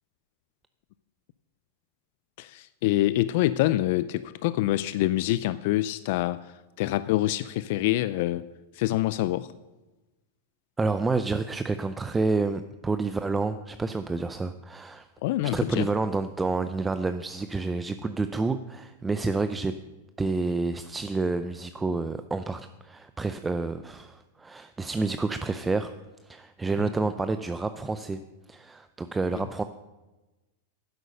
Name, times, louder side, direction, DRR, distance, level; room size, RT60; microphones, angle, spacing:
voice 1, 2.4-8.5 8.7-9.5 15.2-15.9 29.3-29.4, left 15 dB, 60° left, 15 dB, 0.4 m, -26 dB
voice 2, 10.8-15.1 15.5-19.7 20.2-25.9 26.3-28.2 28.5-29.6, right 3 dB, 10° right, 10 dB, 0.4 m, -29 dB
10.0 x 7.9 x 6.5 m, 1.1 s
hypercardioid pair, 120°, 0 cm